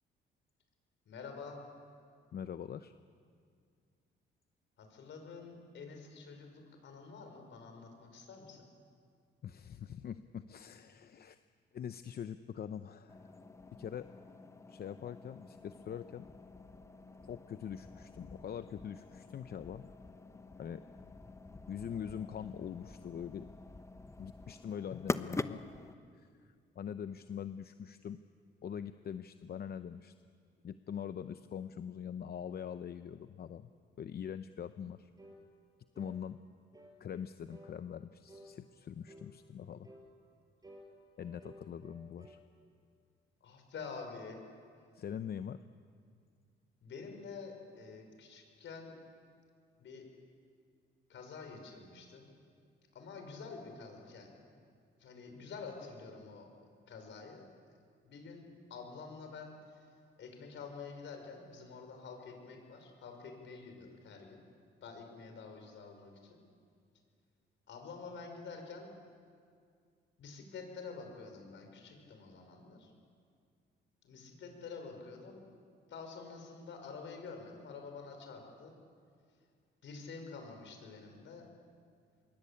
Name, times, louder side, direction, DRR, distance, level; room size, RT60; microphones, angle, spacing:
voice 1, 1.1-1.6 4.8-8.7 43.4-44.4 46.8-49.0 49.8-50.0 51.1-52.3 52.9-54.3 55.0-56.5 56.9-57.5 58.1-59.5 60.2-64.4 64.8-66.4 67.7-68.9 70.2-72.9 74.0-75.5 75.9-78.7 79.8-81.5, left 4 dB, 70° left, 4 dB, 5.9 m, -48 dB
voice 2, 2.3-2.9 9.4-11.4 11.7-13.2 13.7-14.1 14.7-16.3 17.2-19.9 20.6-20.8 21.7-23.5 24.2-25.6 26.1-28.2 28.6-30.1 30.6-33.7 34.0-35.1 36.0-36.4 37.0-39.9 41.2-42.4 44.9-45.6, left 8 dB, 50° left, 11 dB, 0.8 m, -43 dB
sound 1, 13.1-25.9, left 2 dB, 15° left, 1.0 m, -45 dB
sound 2, 35.2-35.4 35.9-36.2 36.7-37.0 37.5-37.8 38.3-38.5 39.1-39.3 39.8-40.1 40.6-42.4, equal, 20° right, 6.1 m, -55 dB
26.0 x 23.0 x 8.6 m, 2.2 s
cardioid pair, 90°, 20 cm